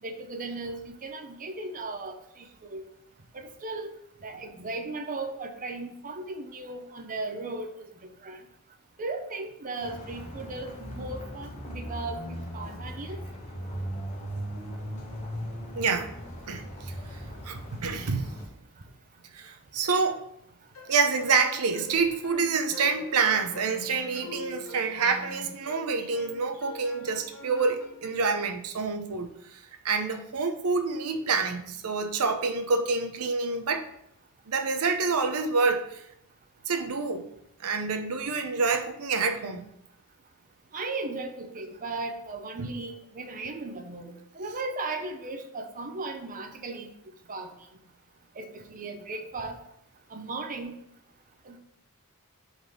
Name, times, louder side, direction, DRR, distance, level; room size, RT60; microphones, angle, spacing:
voice 1, 0.0-2.9 3.3-3.9 4.2-8.4 9.0-13.2 40.7-46.9 47.3-47.5 48.4-49.6 50.1-50.7 51.4-51.6, right 3 dB, 40° right, 4 dB, 0.7 m, -36 dB
sound 1, 9.8-18.5, equal, 35° left, 1.5 m, -38 dB
voice 2, 15.8-16.1 16.5-17.2 17.4-18.3 19.3-20.2 20.9-33.9 34.5-36.0 36.7-37.3 37.6-39.6 42.6-42.7, right 4 dB, 85° right, 6 dB, 0.7 m, -27 dB
sound 2, 20.8-28.4, left 2 dB, 85° left, 1.3 m, -45 dB
5.2 x 4.0 x 6.0 m, 0.75 s
head